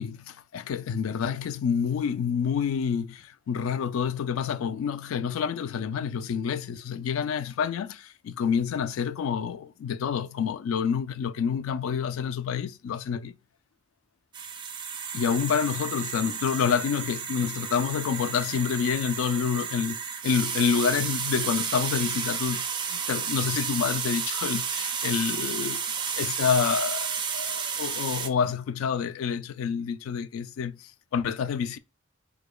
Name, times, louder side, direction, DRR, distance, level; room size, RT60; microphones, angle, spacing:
voice 1, 0.0-13.4 15.1-25.9 26.1-31.8, left 7 dB, 70° left, 0.3 m, -28 dB
sound 1, 14.3-28.3, right 7 dB, 20° right, 0.4 m, -32 dB
4.7 x 2.3 x 2.3 m
head